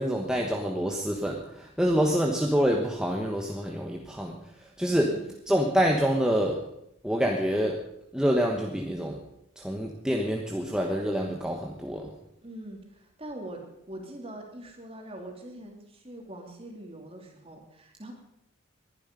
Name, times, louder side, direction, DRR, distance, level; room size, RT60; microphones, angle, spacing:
voice 1, 0.0-5.1 5.5-6.6 7.0-7.8 8.1-9.2 9.6-12.1, equal, 5° right, 0 dB, 1.2 m, -27 dB
voice 2, 4.9-5.3 12.4-13.6 13.9-18.1, right 1 dB, 30° right, 2 dB, 2.9 m, -43 dB
20.0 x 11.5 x 5.4 m, 0.79 s
head